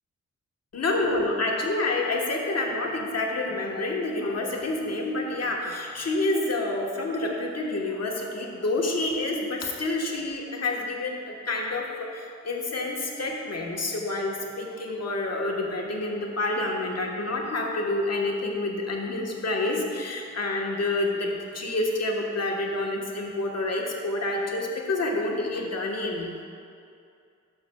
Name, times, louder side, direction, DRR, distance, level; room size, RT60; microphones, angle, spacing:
voice 1, 0.7-26.3, left 2 dB, 55° left, -1 dB, 1.2 m, -28 dB
12.0 x 6.6 x 2.2 m, 2.4 s
cardioid pair, 70°, 30 cm